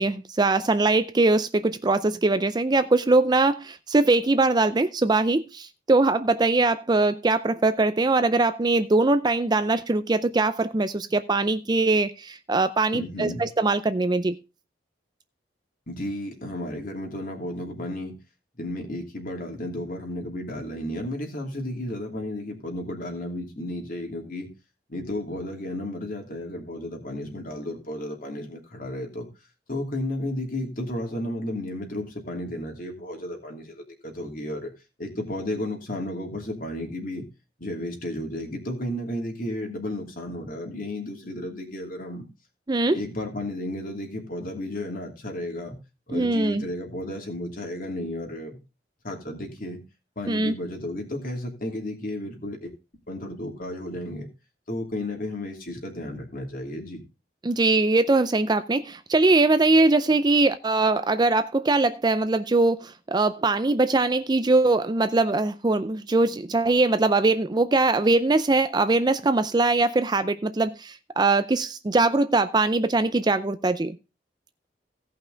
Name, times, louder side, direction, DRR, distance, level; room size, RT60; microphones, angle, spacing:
voice 1, 0.0-14.3 42.7-43.0 46.1-46.6 50.3-50.5 57.4-74.0, right 3 dB, 25° right, 0.5 m, -22 dB
voice 2, 12.9-13.4 15.9-18.1 18.6-24.5 24.9-29.3 29.7-34.7 35.0-37.3 37.6-42.3 42.9-45.8 46.1-48.6 49.0-49.8 50.2-52.7 53.1-54.3 54.7-57.0, left 1 dB, 50° left, 2.7 m, -33 dB
16.5 x 5.7 x 3.9 m
head